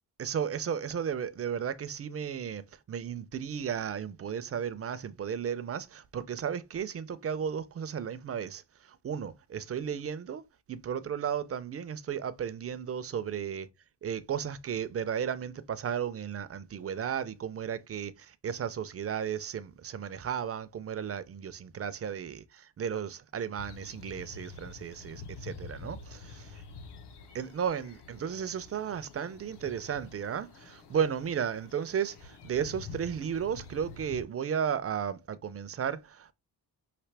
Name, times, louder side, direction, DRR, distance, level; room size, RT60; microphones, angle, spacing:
voice 1, 0.2-10.4 10.7-13.7 14.0-26.5 27.4-36.3, right 8 dB, 35° right, 0.4 m, -34 dB
sound 1, 23.6-34.2, left 4 dB, 70° left, 0.9 m, -47 dB
5.8 x 2.8 x 3.2 m
wide cardioid pair, 165°, 42 cm